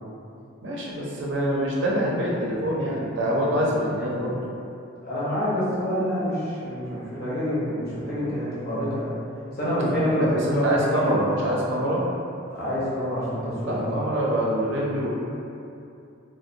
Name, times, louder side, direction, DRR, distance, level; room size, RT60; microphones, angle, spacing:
voice 1, 0.6-4.4 10.2-12.0 13.6-15.1, equal, 60° right, -4 dB, 0.5 m, -25 dB
voice 2, 5.0-9.2 9.5-11.1 12.5-14.0, equal, 50° left, -9 dB, 0.7 m, -26 dB
2.6 x 2.0 x 2.7 m, 2.6 s
head